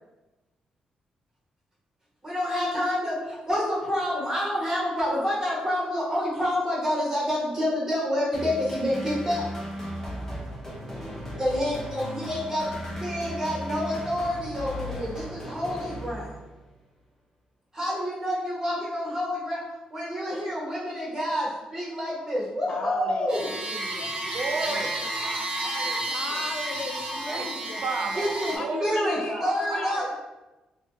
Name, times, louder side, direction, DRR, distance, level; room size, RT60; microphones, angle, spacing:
voice 1, 2.2-9.4 11.4-12.7 13.0-16.3 17.7-19.6 19.9-23.5 28.1-28.5 28.8-30.1, equal, 20° right, -6 dB, 1.4 m, -28 dB
sound 1, 8.3-16.6, equal, 20° left, 1.0 m, -36 dB
voice 2, 22.7-24.1 24.6-24.9 26.1-27.8 28.4-30.1, left 3 dB, 45° left, 3 dB, 0.5 m, -36 dB
sound 2, 23.3-28.6, right 1 dB, 40° right, 1.0 m, -31 dB
voice 3, 24.2-26.4 27.3-28.3 28.6-29.0 29.3-30.1, right 4 dB, 65° right, 3 dB, 0.5 m, -34 dB
3.1 x 2.3 x 3.0 m, 1.1 s
cardioid pair, 85°, 2 cm